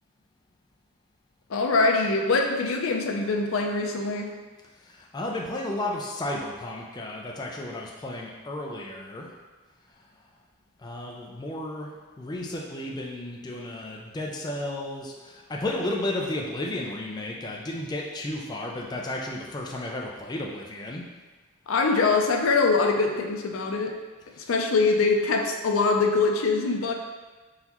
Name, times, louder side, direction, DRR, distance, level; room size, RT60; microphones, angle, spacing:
voice 1, 1.5-4.3 21.7-24.0 24.4-26.9, left 3 dB, 75° left, 2 dB, 0.5 m, -23 dB
voice 2, 4.8-9.3 10.8-11.9 12.2-21.0 24.4-24.5, left 1 dB, 20° left, -1 dB, 0.3 m, -33 dB
4.0 x 3.9 x 2.9 m, 1.3 s
head